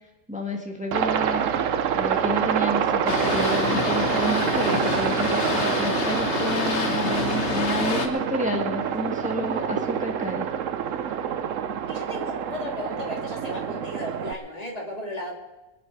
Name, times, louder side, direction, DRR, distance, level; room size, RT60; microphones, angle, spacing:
voice 1, 0.3-1.5 1.9-10.5, equal, 5° right, 2 dB, 1.7 m, -30 dB
Aircraft, 0.9-14.3, right 8 dB, 75° right, 1.1 m, -27 dB
Boat Water vehicle, 3.1-8.1, left 3 dB, 60° left, 1.7 m, -26 dB
voice 2, 11.9-15.3, left 1 dB, 30° left, -1 dB, 2.9 m, -35 dB
22.0 x 10.0 x 4.8 m, 1.1 s
omnidirectional pair, 1.4 m